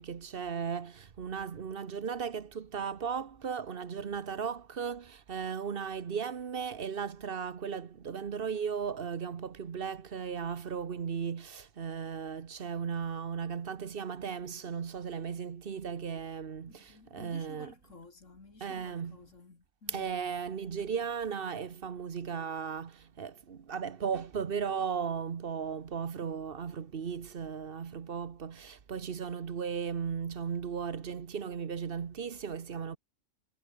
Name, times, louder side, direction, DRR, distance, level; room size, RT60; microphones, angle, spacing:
voice 1, 0.0-17.7 18.6-19.2 19.9-33.0, right 6 dB, 50° right, 1.2 m, -36 dB
voice 2, 16.7-20.2, left 3 dB, 75° left, 3.1 m, -54 dB
omnidirectional pair, 1.3 m